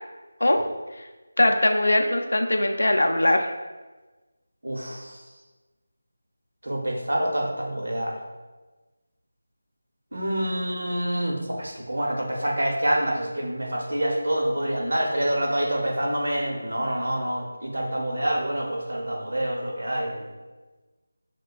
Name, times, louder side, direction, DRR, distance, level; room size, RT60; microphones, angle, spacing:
voice 1, 1.4-3.5, left 1 dB, 75° left, 4 dB, 0.4 m, -21 dB
voice 2, 4.6-5.2 6.6-8.1 10.1-20.3, right 1 dB, 75° right, -1 dB, 0.9 m, -27 dB
6.4 x 2.2 x 2.4 m, 1.2 s
figure-of-eight pair, 170°, 0 cm